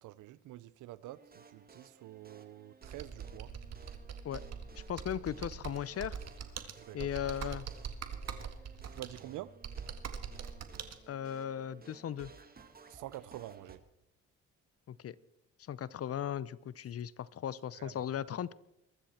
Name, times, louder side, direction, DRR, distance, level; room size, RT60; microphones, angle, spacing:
voice 1, 0.0-3.5 6.8-7.1 8.9-9.6 12.9-13.8 17.7-18.0, right 15 dB, 85° right, 0.7 m, -47 dB
sound 1, 1.0-13.8, right 4 dB, 30° right, 1.8 m, -58 dB
Computer keyboard, 2.8-11.0, right 7 dB, 60° right, 1.8 m, -43 dB
voice 2, 4.7-6.2 6.9-7.6 11.1-12.3 14.9-15.2 15.7-18.5, left 10 dB, 50° left, 0.8 m, -37 dB
22.5 x 13.0 x 4.4 m
cardioid pair, 90°, 30 cm